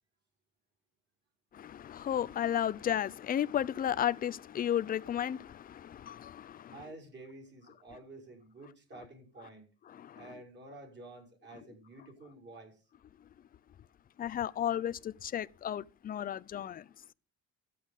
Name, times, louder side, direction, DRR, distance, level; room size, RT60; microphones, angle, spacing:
voice 1, 1.5-6.8 9.9-10.3 14.2-16.9, left 10 dB, 25° left, 0.5 m, -33 dB
voice 2, 6.7-9.7 10.2-12.8, right 2 dB, 30° right, 5.4 m, -50 dB
13.5 x 8.5 x 5.4 m
cardioid pair, 140°, 35 cm